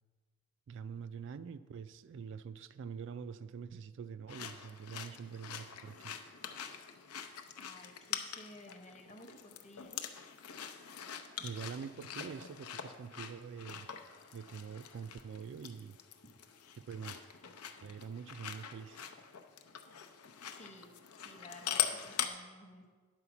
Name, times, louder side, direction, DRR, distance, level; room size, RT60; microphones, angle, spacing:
voice 1, 0.7-6.2 11.4-13.9 14.3-16.0 16.9-17.2 17.8-19.1, right 6 dB, 55° right, 13 dB, 0.3 m, -45 dB
sound 1, 4.3-22.3, left 9 dB, 85° left, 0.6 m, -43 dB
voice 2, 7.6-10.0 16.2-16.3 20.5-20.9 21.2-22.9, left 1 dB, 30° left, 4 dB, 0.9 m, -54 dB
9.7 x 4.9 x 7.0 m, 1.5 s
head